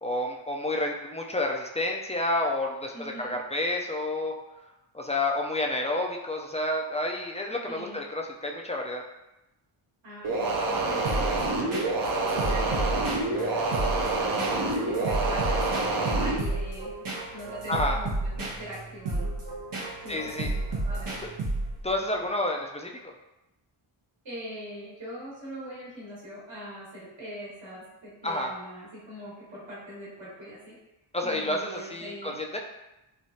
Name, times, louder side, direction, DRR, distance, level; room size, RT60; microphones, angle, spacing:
voice 1, 0.0-4.3 4.9-9.0 17.7-18.0 20.1-20.5 21.2-21.3 21.8-23.1 28.2-28.6 31.1-32.6, left 1 dB, 15° left, 0 dB, 0.4 m, -30 dB
voice 2, 2.9-3.3 7.6-8.0 10.0-16.9 17.3-19.3 20.0-21.2 24.2-30.8 31.2-32.6, equal, 65° right, -7 dB, 1.4 m, -42 dB
sound 1, 10.2-16.4, right 2 dB, 45° right, 0.6 m, -27 dB
sound 2, 11.0-21.9, right 2 dB, 80° right, 0.9 m, -32 dB
3.2 x 2.3 x 2.7 m, 0.94 s
cardioid pair, 45°, 48 cm